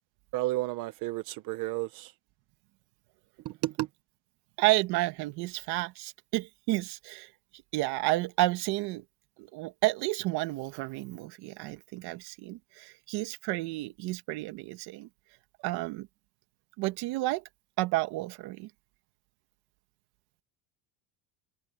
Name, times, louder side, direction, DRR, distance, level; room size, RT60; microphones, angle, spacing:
voice 1, 0.3-2.1 3.4-3.9, right 18 dB, 55° right, 0.8 m, -32 dB
voice 2, 4.6-7.3 7.7-9.0 9.4-15.1 15.6-16.1 16.8-17.4 17.8-18.7, right 19 dB, 75° right, 1.6 m, -31 dB
cardioid pair, 170°, 40 cm